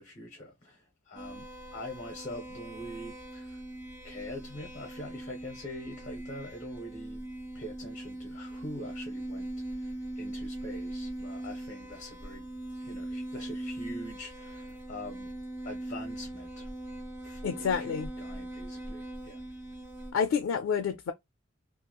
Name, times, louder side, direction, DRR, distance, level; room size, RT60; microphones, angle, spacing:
voice 1, 0.0-3.6 4.0-7.2 7.5-12.5 12.8-15.3 15.6-16.7 17.2-19.4, left 1 dB, 35° left, 0.6 m, -44 dB
sound 1, 1.1-20.1, right 1 dB, 15° right, 1.0 m, -41 dB
voice 2, 17.4-18.1 20.1-21.1, left 6 dB, 85° left, 0.3 m, -29 dB
2.8 x 2.4 x 2.2 m
head